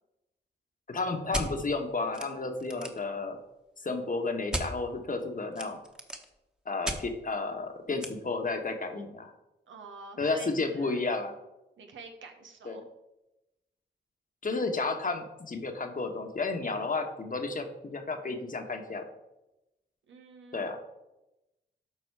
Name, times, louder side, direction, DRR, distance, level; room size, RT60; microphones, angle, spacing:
voice 1, 0.9-3.4 3.8-5.8 6.7-9.3 10.2-11.3 12.6-12.8 14.4-19.0 20.5-20.8, left 3 dB, 45° left, 5 dB, 1.4 m, -32 dB
sound 1, 1.3-1.5 2.1-2.3 2.6-3.0 4.5-4.7 5.5-6.3 6.9-7.0 8.0-8.1, equal, 5° right, 1.3 m, -34 dB
voice 2, 9.7-11.0 11.8-12.9 20.1-20.8, right 4 dB, 85° right, 4 dB, 1.2 m, -48 dB
12.0 x 4.2 x 4.8 m, 0.94 s
cardioid pair, 55°, 19 cm